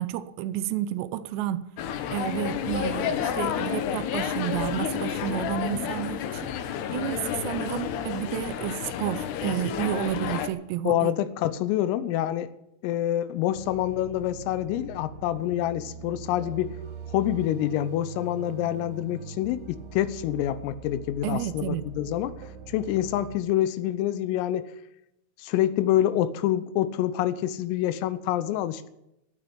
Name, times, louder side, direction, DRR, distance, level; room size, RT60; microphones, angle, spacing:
voice 1, 0.0-1.7 2.1-6.5 6.9-11.1 21.2-21.9, right 12 dB, 85° right, 2.4 m, -31 dB
sound 1, 1.8-10.5, left 9 dB, 70° left, 2.7 m, -30 dB
voice 2, 10.9-12.5 12.8-16.8 17.1-22.4 22.7-24.7 25.4-28.9, left 12 dB, 85° left, 3.5 m, -27 dB
sound 2, 13.5-23.4, right 5 dB, 65° right, 2.5 m, -42 dB
16.0 x 9.3 x 8.6 m
omnidirectional pair, 5.9 m